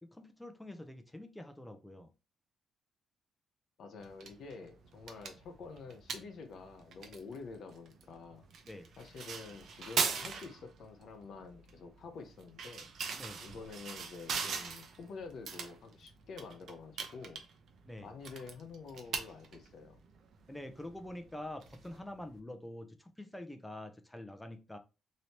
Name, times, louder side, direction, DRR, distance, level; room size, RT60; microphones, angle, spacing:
voice 1, 0.0-2.1 8.6-8.9 13.2-13.4 17.8-18.1 20.5-24.8, left 1 dB, 10° left, 0.5 m, -46 dB
voice 2, 3.8-8.5 9.0-12.9 13.4-17.4 18.0-20.0, left 4 dB, 65° left, 0.7 m, -48 dB
sound 1, 4.0-22.4, right 5 dB, 65° right, 0.6 m, -42 dB
3.1 x 2.8 x 2.9 m
cardioid pair, 80°, 0 cm